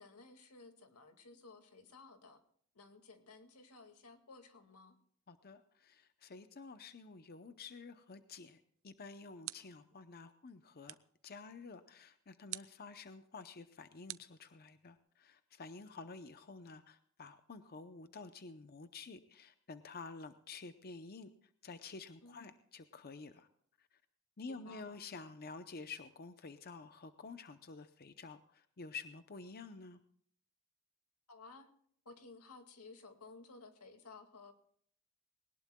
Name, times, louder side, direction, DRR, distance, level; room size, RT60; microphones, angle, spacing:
voice 1, 0.0-2.4 2.7-5.0 9.5-9.9 22.2-22.5 24.5-25.0 31.3-31.7 32.1-34.5, left 3 dB, 90° left, 6 dB, 2.0 m, -56 dB
voice 2, 5.3-11.0 11.2-21.3 21.6-23.5 23.9-24.0 24.4-30.0, left 4 dB, 45° left, 10 dB, 0.7 m, -50 dB
sound 1, 8.8-10.0 10.9-11.2 12.5-12.9 14.1-15.0, right 16 dB, 65° right, 0.6 m, -48 dB
21.0 x 19.0 x 2.3 m, 0.63 s
head